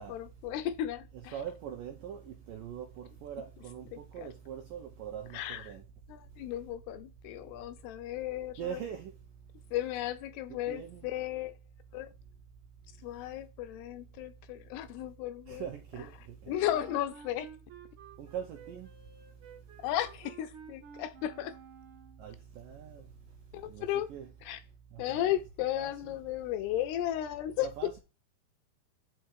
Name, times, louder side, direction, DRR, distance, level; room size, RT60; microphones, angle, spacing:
voice 1, 0.0-1.4 3.9-4.3 5.3-5.7 6.1-8.8 9.7-11.5 11.9-12.1 13.0-17.5 19.8-21.5 23.5-24.1 24.4-24.6 25.0-28.0, left 12 dB, 80° left, 2.5 m, -35 dB
voice 2, 1.3-5.8 8.6-9.1 10.7-11.0 15.5-16.5 18.2-18.9 22.2-23.1 23.7-23.9 24.1-24.3 24.9-25.3 25.8-25.9 27.8-28.0, right 9 dB, 80° right, 2.0 m, -42 dB
Wind instrument woodwind instrument, 16.5-22.3, right 7 dB, 50° right, 1.6 m, -52 dB
5.6 x 4.7 x 6.3 m
omnidirectional pair, 5.0 m